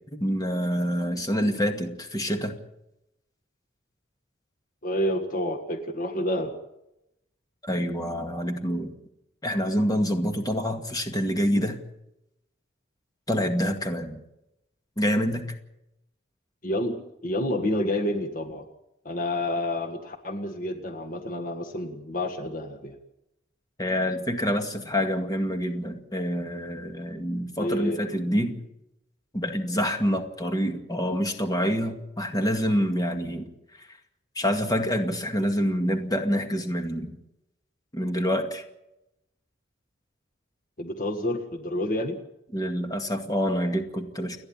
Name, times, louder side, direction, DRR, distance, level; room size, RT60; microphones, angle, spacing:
voice 1, 0.1-2.5 7.6-8.9 9.4-11.8 13.3-14.2 15.0-15.5 23.8-28.6 29.3-33.5 33.8-33.9 34.4-37.2 37.9-38.6 42.5-44.4, equal, 20° left, 5 dB, 2.1 m, -27 dB
voice 2, 4.8-6.5 16.6-18.6 19.0-23.0 27.6-28.0 40.8-42.2, left 1 dB, 45° left, 4 dB, 1.7 m, -29 dB
30.0 x 10.5 x 8.8 m, 0.86 s
head